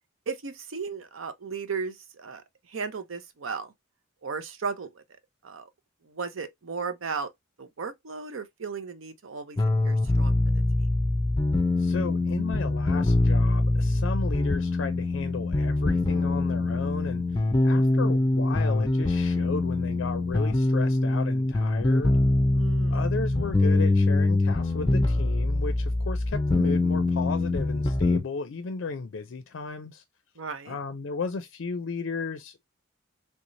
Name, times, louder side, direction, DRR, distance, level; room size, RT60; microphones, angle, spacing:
voice 1, 0.3-3.7 4.2-5.0 5.4-5.7 6.0-7.3 7.6-9.6 9.8-10.9 22.5-23.0 30.4-30.8, right 5 dB, 80° right, 0.7 m, -35 dB
sound 1, 9.6-28.2, left 2 dB, 20° left, 0.6 m, -24 dB
voice 2, 11.8-22.2 22.9-30.0 30.7-32.6, left 4 dB, 65° left, 0.4 m, -35 dB
3.3 x 3.1 x 2.5 m
head